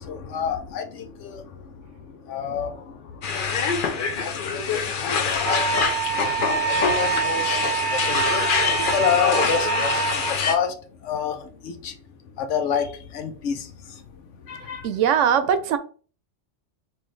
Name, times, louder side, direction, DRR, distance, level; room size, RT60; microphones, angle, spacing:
voice 1, 0.0-1.4 2.3-2.7 4.2-5.6 6.1-8.2 8.9-10.2 10.5-10.7 11.0-11.4 11.6-11.9 12.4-12.9 13.1-13.7 14.5-14.9, left 7 dB, 85° left, 1.0 m, -28 dB
sound 1, 3.2-10.5, left 5 dB, 55° left, 0.7 m, -25 dB
Wind instrument woodwind instrument, 5.4-10.3, right 8 dB, 50° right, 0.6 m, -26 dB
voice 2, 14.8-15.8, right 8 dB, 85° right, 1.0 m, -20 dB
5.6 x 2.6 x 3.1 m
omnidirectional pair, 1.2 m